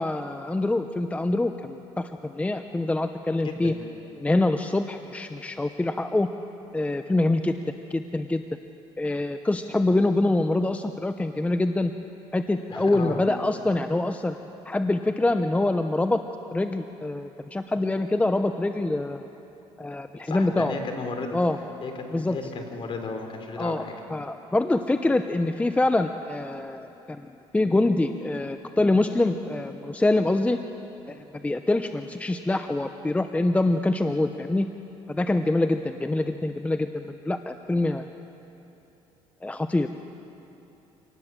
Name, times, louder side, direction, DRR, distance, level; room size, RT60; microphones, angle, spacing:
voice 1, 0.0-3.7 4.2-6.3 6.7-7.6 7.9-8.4 9.0-11.9 12.3-14.4 14.7-16.2 16.5-19.3 19.8-20.7 21.3-21.6 22.1-22.4 23.6-23.8 24.1-27.2 27.5-30.6 31.1-34.7 35.1-38.1 39.4-39.9, left 2 dB, 10° left, 8 dB, 0.7 m, -25 dB
voice 2, 12.7-13.2 20.2-21.4 21.8-24.0, left 4 dB, 50° left, 4 dB, 3.5 m, -34 dB
25.5 x 19.0 x 7.5 m, 3.0 s
cardioid pair, 100°, 12 cm